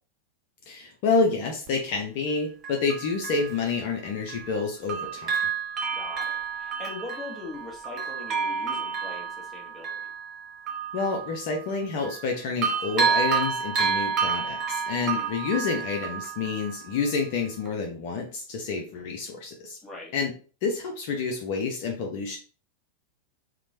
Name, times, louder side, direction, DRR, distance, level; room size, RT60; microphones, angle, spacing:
voice 1, 0.7-5.4 10.9-19.8 20.1-20.3 20.6-22.4, left 4 dB, 45° left, 1 dB, 0.5 m, -28 dB
Bell, 1.7-1.8 2.6-4.6 4.9-12.3 12.6-17.2 17.7-17.8, right 6 dB, 30° right, 0.7 m, -30 dB
voice 2, 5.9-10.1 15.0-15.3 19.8-20.1, left 3 dB, 10° left, -3 dB, 1.1 m, -41 dB
2.9 x 2.1 x 2.6 m, 0.39 s
figure-of-eight pair, 90°, 0 cm